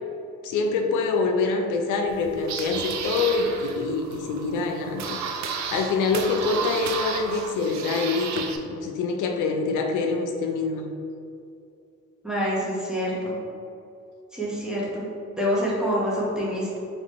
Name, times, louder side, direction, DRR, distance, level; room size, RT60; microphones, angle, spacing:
voice 1, 0.4-10.9, left 4 dB, 85° left, 3 dB, 0.5 m, -25 dB
sound 1, 2.1-8.6, right 6 dB, 65° right, 0.5 m, -32 dB
voice 2, 12.2-13.3 14.3-15.1 15.3-16.8, equal, ahead, -7 dB, 1.3 m, -26 dB
3.7 x 3.7 x 3.1 m, 2.5 s
cardioid pair, 90°, 30 cm